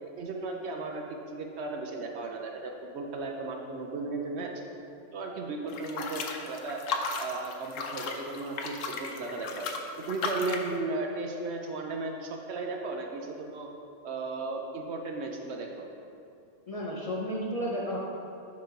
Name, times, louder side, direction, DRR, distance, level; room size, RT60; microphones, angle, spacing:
voice 1, 0.0-4.5 5.1-6.8 7.2-9.7 10.0-13.7 14.0-15.9, right 3 dB, 65° right, 2 dB, 0.9 m, -35 dB
sound 1, 5.7-10.7, left 4 dB, 85° left, 1.0 m, -35 dB
voice 2, 16.7-18.0, equal, 35° left, -4 dB, 0.6 m, -32 dB
6.7 x 5.2 x 3.8 m, 2.5 s
omnidirectional pair, 1.3 m